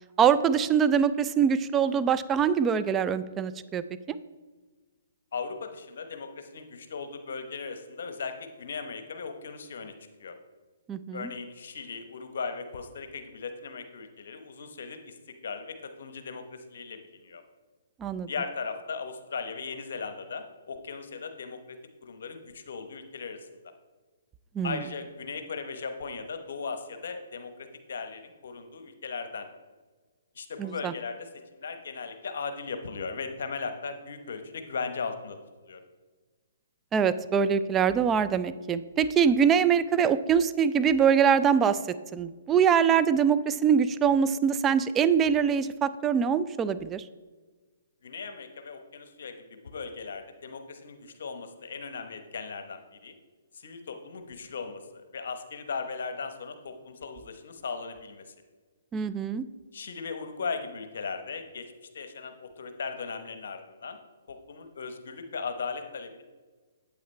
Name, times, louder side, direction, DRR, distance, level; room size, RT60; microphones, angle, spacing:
voice 1, 0.2-4.2 10.9-11.3 18.0-18.3 24.5-24.8 30.6-30.9 36.9-41.8 42.1-47.0 58.9-59.4, right 7 dB, 20° right, 13 dB, 0.4 m, -24 dB
voice 2, 5.3-9.9 10.2-10.3 11.1-15.2 15.4-17.4 18.3-23.5 24.6-29.5 30.3-35.4 35.6-35.8 48.0-53.2 53.5-58.3 59.7-64.0 64.3-66.2, left 5 dB, 65° left, 8 dB, 1.0 m, -38 dB
8.5 x 8.3 x 3.2 m, 1.3 s
hypercardioid pair, 135°, 0 cm